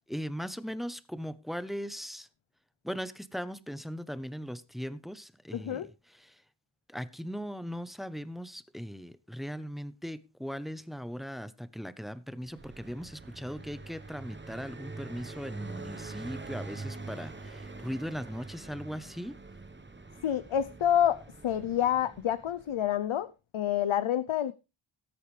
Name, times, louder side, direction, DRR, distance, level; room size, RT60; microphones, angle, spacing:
voice 1, 0.0-2.3 2.8-6.4 6.9-19.4, equal, ahead, 0.7 m, -39 dB
voice 2, 5.5-5.9 20.2-24.5, left 10 dB, 75° left, 0.7 m, -28 dB
Car passing by, 12.4-23.0, right 3 dB, 25° right, 1.1 m, -44 dB
18.5 x 8.4 x 3.2 m
wide cardioid pair, 100°, 49 cm